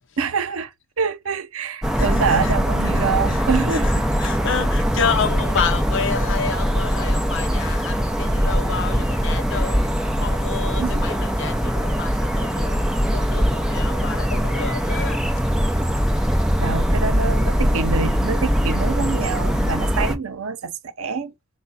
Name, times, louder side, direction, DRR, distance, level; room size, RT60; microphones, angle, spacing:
voice 1, 0.2-3.9 10.8-11.1 16.6-21.3, right 5 dB, 90° right, 0.6 m, -26 dB
sound 1, 1.8-20.2, equal, 5° right, 0.7 m, -21 dB
voice 2, 2.0-2.6 2.9-3.9 4.2-9.9 10.2-16.2, left 6 dB, 65° left, 0.7 m, -30 dB
4.6 x 2.3 x 4.0 m
head